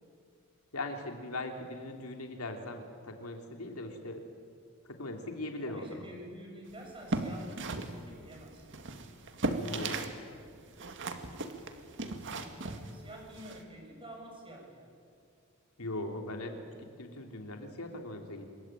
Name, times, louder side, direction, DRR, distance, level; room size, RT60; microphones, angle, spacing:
voice 1, 0.7-4.2 4.9-6.0 9.6-10.0 15.8-18.5, left 2 dB, 85° left, 4 dB, 3.3 m, -40 dB
voice 2, 5.7-8.7 11.5-11.9 12.5-14.9, right 1 dB, 25° right, 1 dB, 7.2 m, -49 dB
sound 1, 6.9-10.2 10.4-13.6, right 2 dB, 60° right, 2.1 m, -37 dB
26.0 x 23.0 x 9.1 m, 2.3 s
head